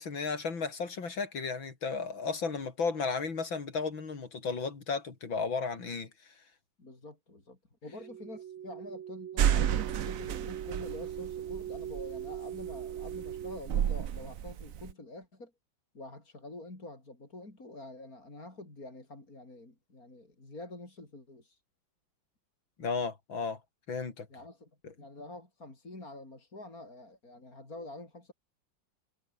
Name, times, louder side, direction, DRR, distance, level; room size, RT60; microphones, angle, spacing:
voice 1, 0.0-6.1 22.8-23.6 23.9-24.3 24.8-24.9, left 4 dB, 75° left, 4.1 m, -34 dB
voice 2, 6.8-15.5 15.9-21.6 24.3-24.7 25.0-28.3, left 2 dB, 45° left, 6.2 m, -47 dB
sound 1, 8.0-13.6, right 10 dB, 80° right, 2.0 m, -41 dB
sound 2, 9.4-14.9, right 10 dB, 55° right, 1.1 m, -32 dB
omnidirectional pair, 2.1 m